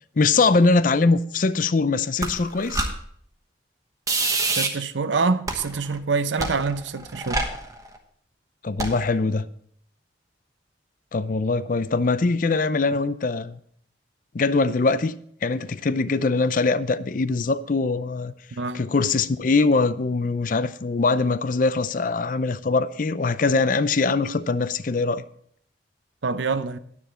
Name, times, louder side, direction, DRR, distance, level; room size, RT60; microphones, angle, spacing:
voice 1, 0.2-2.9 8.6-9.4 11.1-13.6 14.3-15.2 15.4-18.3 18.7-25.2, left 3 dB, 45° left, 0.5 m, -22 dB
Papatone Pictures Engine Thrum Scientific Glitches, 2.2-2.9 4.1-4.7 5.5-6.0 6.4-8.0 8.8-9.1, right 3 dB, 20° right, 1.1 m, -26 dB
voice 2, 4.5-7.5 18.5-18.9 26.2-26.8, right 4 dB, 80° right, 0.6 m, -26 dB
10.0 x 9.7 x 4.3 m
head